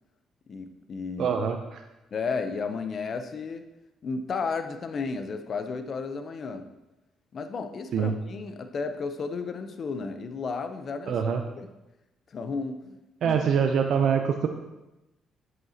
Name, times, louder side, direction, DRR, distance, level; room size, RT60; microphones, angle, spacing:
voice 1, 0.5-1.4 2.1-3.6 4.0-6.7 7.3-11.2 11.6-11.7 12.3-13.4, left 4 dB, 50° left, 8 dB, 0.7 m, -33 dB
voice 2, 1.2-1.8 7.9-8.1 11.1-11.4 13.2-14.5, right 7 dB, 70° right, 5 dB, 0.5 m, -24 dB
7.9 x 7.7 x 2.8 m, 0.98 s
cardioid pair, 90°, 0 cm